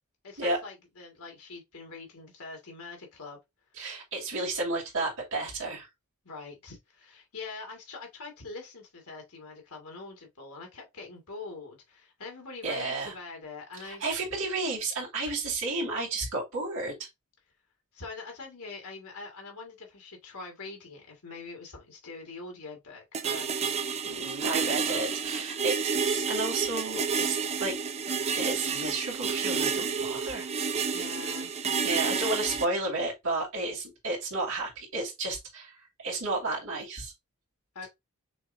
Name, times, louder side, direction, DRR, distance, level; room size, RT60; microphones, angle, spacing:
voice 1, 0.2-3.4 6.2-14.0 17.9-24.0 30.9-31.5 37.7-37.9, left 3 dB, 90° left, 1.9 m, -43 dB
voice 2, 3.8-5.9 12.6-13.1 13.8-17.1 24.0-25.8 26.0-27.8 28.3-30.5 31.8-35.7 36.0-37.1, right 2 dB, 60° right, 2.5 m, -32 dB
sound 1, 23.1-32.7, right 6 dB, 30° right, 0.5 m, -30 dB
6.2 x 3.2 x 2.6 m
head